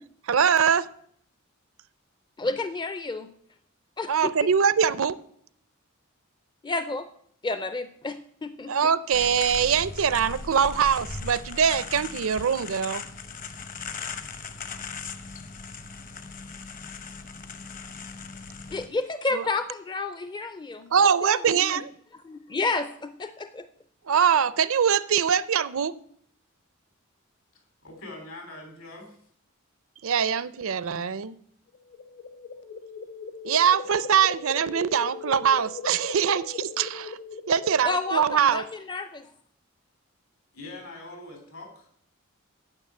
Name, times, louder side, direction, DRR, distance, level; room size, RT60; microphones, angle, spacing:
voice 1, 0.3-0.9 4.1-5.2 8.7-13.0 19.3-19.4 20.9-21.9 24.1-25.9 30.0-31.3 33.4-37.2 37.5-38.6, right 7 dB, 70° right, 17 dB, 0.6 m, -23 dB
voice 2, 2.4-3.3 4.0-4.5 6.6-7.1 7.4-8.7 18.7-21.8 22.1-23.7 37.8-39.3, left 3 dB, 20° left, 11 dB, 0.5 m, -31 dB
sound 1, 9.1-18.9, left 4 dB, 40° left, 0.9 m, -38 dB
voice 3, 27.8-29.2 40.5-41.9, left 2 dB, 70° left, 3 dB, 3.8 m, -42 dB
sound 2, 31.7-38.4, left 5 dB, 55° left, 1.3 m, -39 dB
9.7 x 6.6 x 8.5 m, 0.65 s
head